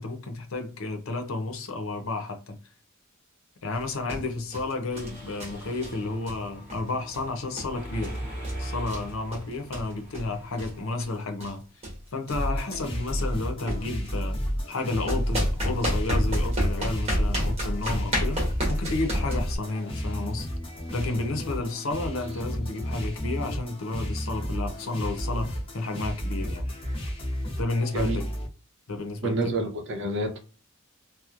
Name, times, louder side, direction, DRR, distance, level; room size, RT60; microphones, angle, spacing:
voice 1, 0.0-2.6 3.6-8.2 8.6-11.6 12.1-14.4 14.7-20.5 20.9-26.7 27.6-28.3 28.9-29.4, left 2 dB, 75° left, 0.6 m, -31 dB
sound 1, 3.7-3.8 4.1-4.3 4.5-4.7 5.0-5.5 5.8-6.0 6.3-6.4 6.7-6.8 7.1-7.2 7.6-7.8 8.0-8.2 8.4-9.0 9.3-10.3 10.6-10.7 11.0-11.1 11.4-11.5 11.8-12.0 12.3-12.4 12.7-12.9 13.2-13.3 13.7-14.1 15.1-19.6, equal, 30° right, 1.0 m, -29 dB
Mechanisms, 4.9-10.8, right 1 dB, 10° right, 1.2 m, -40 dB
sound 2, 12.3-28.5, equal, 25° left, 0.8 m, -32 dB
voice 2, 29.2-30.4, right 2 dB, 60° right, 0.7 m, -28 dB
2.9 x 2.1 x 2.4 m
head